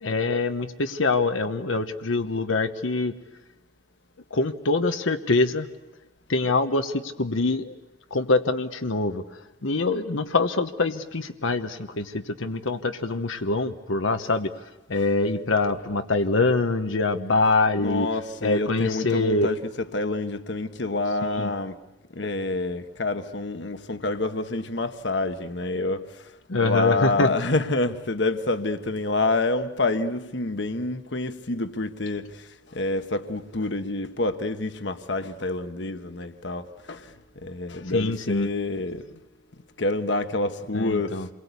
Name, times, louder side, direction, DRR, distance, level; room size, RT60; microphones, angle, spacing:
voice 1, 0.0-3.1 4.3-5.7 6.3-7.8 8.1-9.2 9.6-14.5 14.9-18.1 18.4-19.5 21.3-21.5 26.5-27.3 37.9-38.5 40.7-41.3, left 3 dB, 85° left, 1.1 m, -24 dB
voice 2, 17.8-21.8 22.1-39.1 39.8-41.3, left 2 dB, 65° left, 1.2 m, -28 dB
28.0 x 22.0 x 8.3 m
head